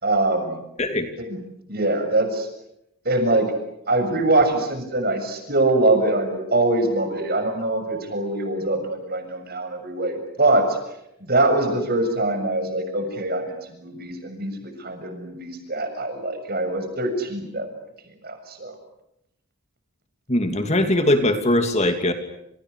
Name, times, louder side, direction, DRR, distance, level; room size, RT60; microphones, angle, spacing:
voice 1, 0.0-0.6 1.2-1.4 1.7-2.5 3.1-3.5 3.9-10.8 11.2-17.7 18.2-18.8, right 2 dB, 45° right, 7 dB, 6.9 m, -23 dB
voice 2, 0.8-1.1 20.3-22.1, left 1 dB, 30° left, 7 dB, 2.7 m, -20 dB
30.0 x 29.0 x 6.6 m, 0.82 s
head